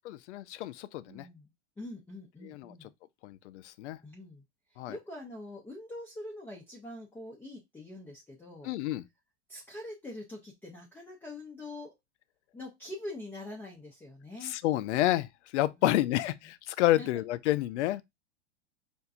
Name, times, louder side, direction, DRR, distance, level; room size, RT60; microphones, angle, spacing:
voice 1, 0.1-1.3 2.4-2.7 3.2-4.0 4.8-4.9 8.6-9.0 14.4-18.0, left 15 dB, 75° left, 0.5 m, -29 dB
voice 2, 1.1-2.9 4.0-4.4 4.7-8.7 9.5-11.9 12.5-14.5 15.8-16.5 17.0-17.1, left 1 dB, 5° left, 0.5 m, -44 dB
4.4 x 2.6 x 2.4 m
hypercardioid pair, 130°, 36 cm